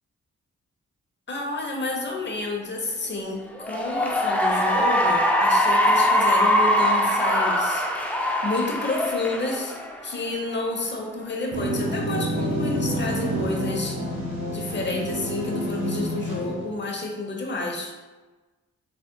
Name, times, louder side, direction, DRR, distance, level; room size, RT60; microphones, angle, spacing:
voice 1, 1.3-9.8 10.0-14.0 14.5-17.9, left 2 dB, 35° left, 1 dB, 0.9 m, -30 dB
Cheering / Applause, 3.5-10.2, equal, 5° left, 0.5 m, -22 dB
sound 1, 11.5-16.8, equal, 75° right, 1.0 m, -28 dB
3.7 x 3.4 x 2.2 m, 1.2 s
supercardioid pair, 45°, 32 cm